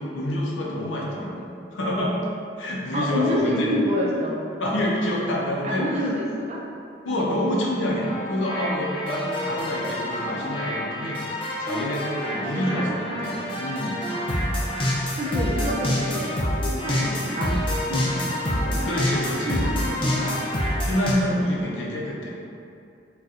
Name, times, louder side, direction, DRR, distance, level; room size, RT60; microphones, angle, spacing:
voice 1, 0.0-1.5 1.7-2.2 2.6-3.7 4.6-5.8 7.0-11.2 11.6-14.0 18.8-19.6 20.8-22.3, left 1 dB, 90° left, -3 dB, 0.6 m, -27 dB
voice 2, 2.9-4.4 5.4-6.6 7.1-7.3 12.5-13.3 14.1-20.4 21.3-21.9, equal, 35° right, -3 dB, 0.4 m, -29 dB
sound 1, 8.0-21.1, left 1 dB, 30° left, 0.4 m, -27 dB
4.1 x 2.2 x 2.4 m, 2.4 s
head